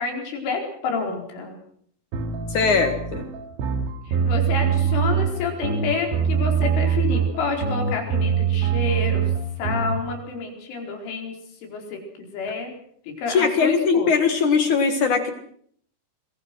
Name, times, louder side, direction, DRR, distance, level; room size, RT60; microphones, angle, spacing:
voice 1, 0.0-1.6 4.1-9.3 9.6-11.3 11.6-12.7 13.1-14.1, left 4 dB, 75° left, 2 dB, 7.1 m, -29 dB
sound 1, 2.1-10.0, right 7 dB, 70° right, 4.5 m, -23 dB
voice 2, 2.5-3.2 13.3-15.3, left 5 dB, 60° left, 7 dB, 2.1 m, -20 dB
26.0 x 21.5 x 6.3 m, 0.63 s
omnidirectional pair, 5.6 m